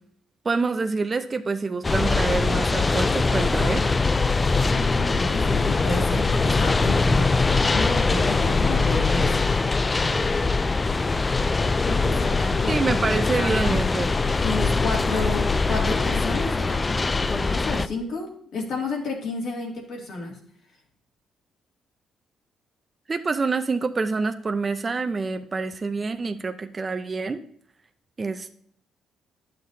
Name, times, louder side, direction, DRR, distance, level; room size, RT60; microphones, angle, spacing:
voice 1, 0.4-3.9 12.7-14.1 23.1-27.4 28.2-28.5, right 4 dB, 30° right, 8 dB, 0.6 m, -26 dB
sound 1, 1.8-17.9, left 3 dB, 25° left, 0.3 m, -22 dB
voice 2, 4.7-7.3 7.7-9.5 11.9-13.8 14.4-16.8 17.3-20.4, left 3 dB, 70° left, 0 dB, 2.2 m, -31 dB
11.0 x 6.7 x 2.7 m, 0.64 s
cardioid pair, 90°, 0 cm